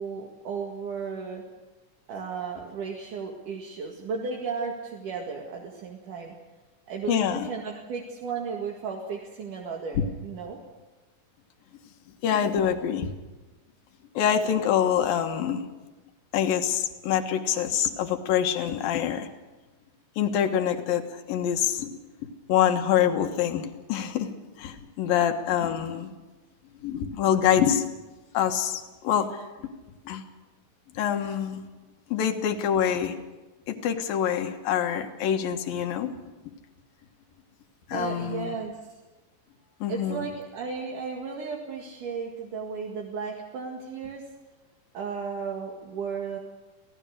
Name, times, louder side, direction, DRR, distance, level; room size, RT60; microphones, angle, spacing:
voice 1, 0.0-1.4 2.1-6.3 6.9-10.6 37.9-38.8 39.9-44.3 44.9-46.4, right 5 dB, 65° right, 0 dB, 3.4 m, -34 dB
voice 2, 7.1-7.5 9.9-10.0 12.2-13.1 14.2-15.6 16.3-19.3 20.2-21.9 22.5-24.3 24.6-26.1 26.8-27.8 28.3-29.4 30.1-30.2 31.0-31.6 32.1-33.2 33.7-36.1 37.9-38.6 39.8-40.3, left 9 dB, 85° left, 6 dB, 3.2 m, -25 dB
27.5 x 17.0 x 6.5 m, 1.2 s
omnidirectional pair, 4.0 m